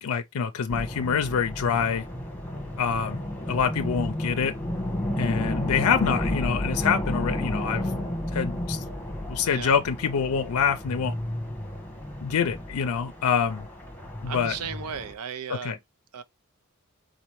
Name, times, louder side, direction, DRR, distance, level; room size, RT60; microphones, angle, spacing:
voice 1, 0.0-2.0 2.8-3.2 3.5-4.5 5.2-7.9 8.3-8.8 9.3-11.1 12.2-13.6 14.2-14.5 15.6-15.8, left 6 dB, 80° left, 0.4 m, -26 dB
sound 1, 0.7-15.1, left 1 dB, 10° left, 1.0 m, -32 dB
voice 2, 14.3-15.8 16.1-16.2, right 7 dB, 90° right, 0.6 m, -35 dB
4.1 x 4.0 x 3.0 m
head